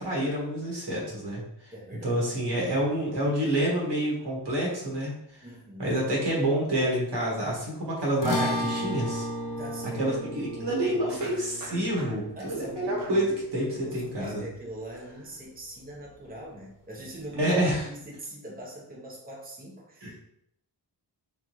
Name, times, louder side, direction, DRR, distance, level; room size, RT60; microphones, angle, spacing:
voice 1, 0.0-1.4 2.0-5.1 5.8-9.3 10.0-14.4 17.4-17.9 20.0-20.1, right 1 dB, 75° right, -3 dB, 1.5 m, -28 dB
voice 2, 1.7-2.7 5.4-6.0 9.5-10.3 10.5-11.2 12.4-13.4 13.7-20.3, right 1 dB, 20° right, -3 dB, 0.9 m, -43 dB
sound 1, 7.4-7.5 7.7-8.1 11.2-12.5 13.0-13.4 14.1-14.3, right 3 dB, 50° right, 0.8 m, -46 dB
sound 2, 8.2-14.7, left 1 dB, 50° left, 0.8 m, -34 dB
3.7 x 3.6 x 3.0 m, 0.75 s
wide cardioid pair, 110°, 42 cm